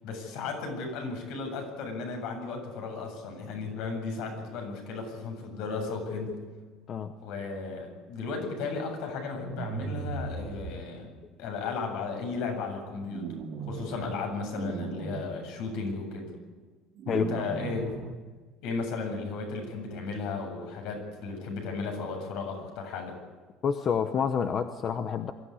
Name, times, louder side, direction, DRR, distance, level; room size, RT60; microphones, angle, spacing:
voice 1, 0.0-6.3 7.2-11.1 11.4-13.4 13.7-16.3 17.0-17.9 18.6-23.1, left 4 dB, 70° left, 3 dB, 7.9 m, -34 dB
sound 1, 9.3-10.7 13.0-14.1 14.5-15.2 17.0-18.1, right 5 dB, 45° right, 2.7 m, -38 dB
voice 2, 17.1-17.4 23.6-25.3, left 7 dB, 35° left, 8 dB, 1.0 m, -28 dB
23.5 x 15.0 x 9.9 m, 1.4 s
cardioid pair, 160°, 0 cm